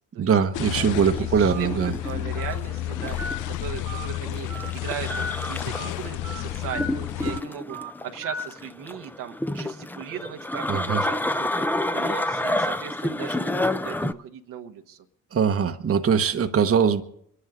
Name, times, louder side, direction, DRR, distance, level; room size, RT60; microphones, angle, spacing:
voice 1, 0.2-1.9 10.7-11.0 15.3-17.0, right 7 dB, 45° right, 1.1 m, -22 dB
sound 1, 0.5-7.4, left 15 dB, 65° left, 0.5 m, -31 dB
voice 2, 0.8-3.2 3.5-4.5 4.7-7.8 8.0-11.7 11.9-15.0, right 9 dB, 75° right, 1.2 m, -37 dB
sound 2, 0.9-14.1, left 1 dB, 5° left, 0.7 m, -30 dB
Telephone, 1.5-1.7 2.4-2.5 3.2-3.4 3.9-4.1 4.5-4.7 5.1-5.3 5.7-5.9 6.2-6.4 6.7-6.9 7.2-7.4 7.7-7.9 8.2-8.4, right 1 dB, 90° right, 2.0 m, -34 dB
25.0 x 11.0 x 3.7 m
hypercardioid pair, 50°, 33 cm